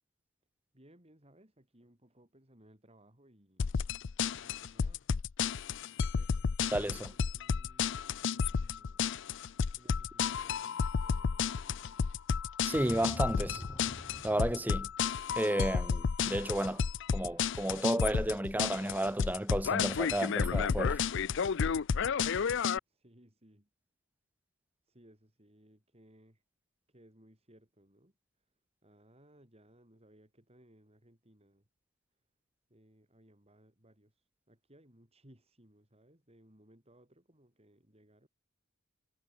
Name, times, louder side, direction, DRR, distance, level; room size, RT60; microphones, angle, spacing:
voice 1, 0.7-3.8 4.4-5.1 6.1-6.5 6.9-9.2 9.8-11.7 22.9-23.7 24.8-26.4 26.9-28.5 28.8-31.7 32.7-38.3, right 1 dB, 30° right, 5.7 m, -63 dB
sound 1, 3.6-22.8, left 6 dB, 60° left, 0.5 m, -32 dB
voice 2, 6.7-7.1 12.6-13.6 14.2-14.9 15.4-16.8 17.1-21.0, right 1 dB, 10° right, 0.9 m, -32 dB
sound 2, 12.7-14.9, left 1 dB, 20° left, 2.1 m, -46 dB
head